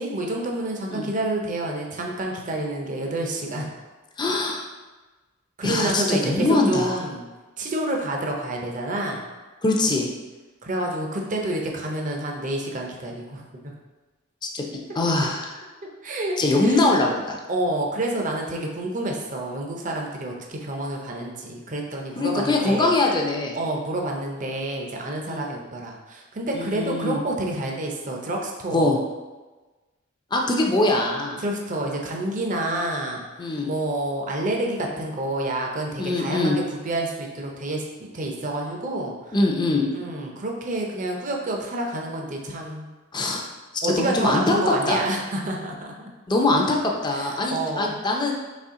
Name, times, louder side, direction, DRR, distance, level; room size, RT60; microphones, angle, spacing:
voice 1, 0.0-3.7 5.6-7.2 7.6-9.2 10.6-13.4 16.0-16.4 16.6-16.8 17.5-22.9 23.5-28.9 31.4-33.2 33.6-39.4 39.9-42.9 43.8-46.1 47.2-48.0, right 1 dB, 40° right, 0 dB, 0.6 m, -28 dB
voice 2, 4.2-4.7 5.6-7.0 9.6-10.1 14.5-14.6 14.9-15.6 16.4-17.4 22.2-23.6 25.3-25.5 26.5-27.2 28.7-29.0 30.3-31.4 33.4-33.7 36.0-36.6 39.3-39.9 43.1-43.4 43.8-44.5 44.9-45.0 46.3-46.8 47.0-48.3, left 2 dB, 20° left, 0 dB, 0.5 m, -22 dB
4.2 x 3.3 x 3.6 m, 1.2 s
head